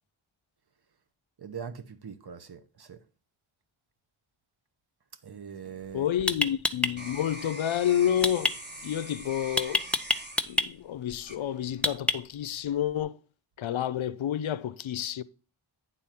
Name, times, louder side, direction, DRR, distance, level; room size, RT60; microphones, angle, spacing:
voice 1, 1.4-3.0 5.2-6.1, right 7 dB, 55° right, 0.8 m, -42 dB
sound 1, 5.7-5.8 6.3-6.9 8.2-8.5 9.6-10.7 11.8-12.4, left 2 dB, 5° left, 0.5 m, -26 dB
sound 2, 5.8-12.0 12.6-13.0, right 1 dB, 20° right, 1.2 m, -44 dB
voice 2, 5.9-9.9 10.4-13.2 13.6-15.2, left 10 dB, 90° left, 0.5 m, -29 dB
9.0 x 3.9 x 5.7 m
wide cardioid pair, 60°, 46 cm